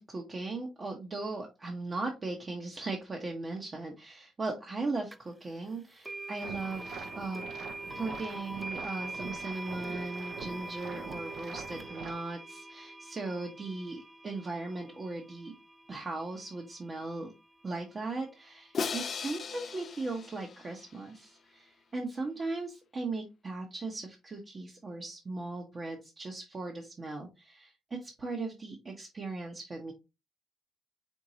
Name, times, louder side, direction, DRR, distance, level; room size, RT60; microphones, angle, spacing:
voice 1, 0.0-7.4 7.9-15.5 15.9-17.3 17.6-29.9, right 3 dB, 30° right, 1 dB, 0.9 m, -38 dB
sound 1, 5.1-5.2 6.0-17.0, right 2 dB, 10° right, 0.4 m, -43 dB
sound 2, 6.4-12.1, right 5 dB, 70° right, 0.8 m, -45 dB
Crash cymbal, 18.7-21.0, left 5 dB, 50° left, 0.5 m, -37 dB
4.6 x 3.7 x 2.8 m, 0.26 s
cardioid pair, 95°, 0 cm